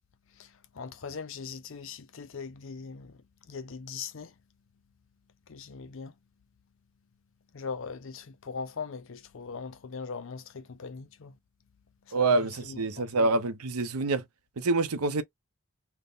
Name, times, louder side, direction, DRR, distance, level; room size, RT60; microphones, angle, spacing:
voice 1, 0.7-3.2 3.5-4.3 5.5-6.1 7.5-11.3 12.1-12.4 12.7-13.1, left 5 dB, 60° left, 0.5 m, -40 dB
voice 2, 12.1-14.2 14.6-15.2, right 3 dB, 90° right, 0.7 m, -26 dB
3.5 x 2.1 x 3.9 m
head